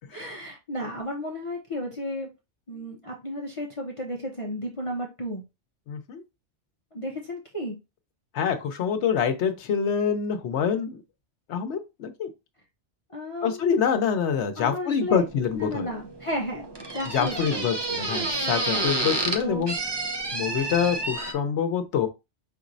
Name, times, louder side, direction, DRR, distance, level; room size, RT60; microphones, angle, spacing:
voice 1, 0.1-2.3 2.7-5.4 6.9-7.8 13.1-13.8 14.5-15.2 15.5-17.7 18.0-18.1 18.6-18.9 19.4-19.7, equal, 30° left, 0.7 m, -33 dB
voice 2, 5.9-6.2 8.3-11.0 11.5-12.3 13.4-15.9 17.1-19.7 20.3-22.1, left 7 dB, 75° left, 1.0 m, -26 dB
sound 1, 15.1-21.3, right 2 dB, 30° right, 0.5 m, -30 dB
5.3 x 3.0 x 2.6 m
omnidirectional pair, 1.2 m